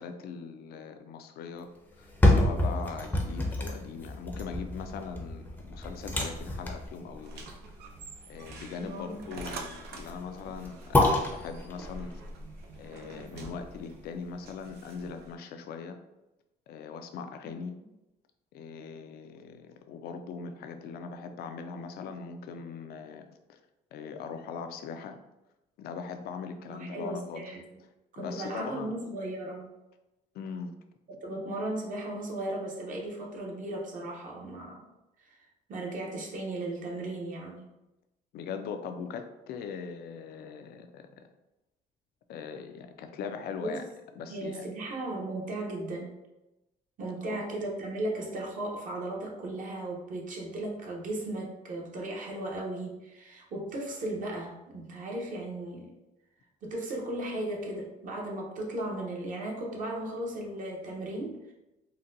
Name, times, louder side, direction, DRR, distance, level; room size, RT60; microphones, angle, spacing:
voice 1, 0.0-1.7 2.0-7.5 8.3-12.2 12.8-16.0 16.7-17.7 18.5-23.6 23.9-25.2 25.8-27.4 28.2-29.0 30.3-30.7 38.3-41.3 42.3-43.8 44.2-44.7 47.2-47.4, left 5 dB, 65° left, 7 dB, 0.4 m, -40 dB
sound 1, 1.9-14.0 14.4-14.5, left 1 dB, 10° left, 0.6 m, -29 dB
sound 2, 7.2-15.3, right 3 dB, 70° right, 0.5 m, -46 dB
voice 2, 8.8-9.2 17.4-17.6 26.7-27.6 28.1-29.7 31.2-34.9 35.2-35.4 35.7-37.7 43.6-43.8 44.3-46.2 47.0-55.9 56.6-61.5, right 1 dB, 50° right, -1 dB, 0.9 m, -36 dB
4.0 x 2.2 x 2.6 m, 0.95 s
cardioid pair, 110°, 17 cm